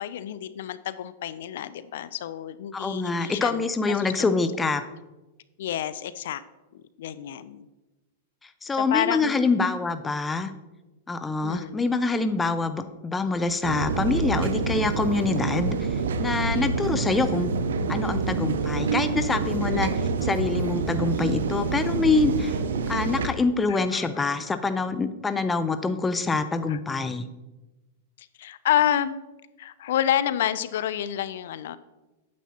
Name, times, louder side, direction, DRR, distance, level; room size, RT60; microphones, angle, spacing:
voice 1, 0.0-4.3 5.6-6.4 6.7-7.7 8.8-9.3 11.4-11.8 16.5-16.7 23.7-24.1 26.7-26.8 28.2-29.2 29.6-31.8, left 11 dB, 70° left, 15 dB, 0.4 m, -29 dB
voice 2, 2.7-4.8 8.6-10.5 11.1-15.9 16.2-17.5 17.9-19.9 20.2-22.6 22.9-27.3, left 3 dB, 10° left, 10 dB, 0.4 m, -25 dB
sound 1, 13.6-23.3, right 4 dB, 85° right, 0.6 m, -27 dB
9.2 x 7.3 x 2.8 m, 1.1 s
hypercardioid pair, 135°, 0 cm